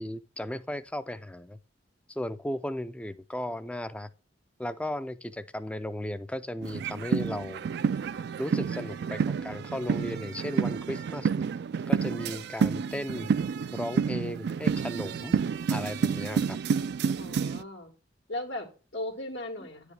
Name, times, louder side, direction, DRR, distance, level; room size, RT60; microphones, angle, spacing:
voice 1, 0.0-1.6 2.1-4.1 4.6-7.7 8.4-11.3 11.9-13.3 13.7-15.4 15.7-16.6, left 1 dB, 5° left, 0.4 m, -35 dB
sound 1, 6.6-17.6, right 6 dB, 65° right, 0.3 m, -29 dB
voice 2, 17.2-17.9 18.3-19.9, left 1 dB, 85° left, 1.7 m, -37 dB
9.7 x 4.9 x 3.2 m
head